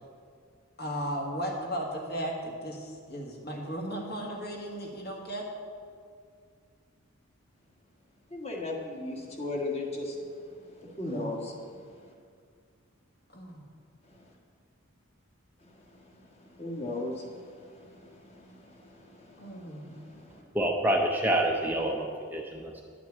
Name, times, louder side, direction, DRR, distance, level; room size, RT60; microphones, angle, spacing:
voice 1, 0.8-5.5 11.0-11.3 13.3-13.6 19.4-19.9, equal, 50° left, 0 dB, 1.8 m, -36 dB
voice 2, 8.3-10.1 11.0-11.5 16.6-17.2, left 2 dB, 30° left, 0 dB, 1.6 m, -34 dB
voice 3, 20.5-22.8, right 1 dB, 10° right, 1 dB, 0.6 m, -27 dB
10.5 x 6.0 x 8.5 m, 2.2 s
head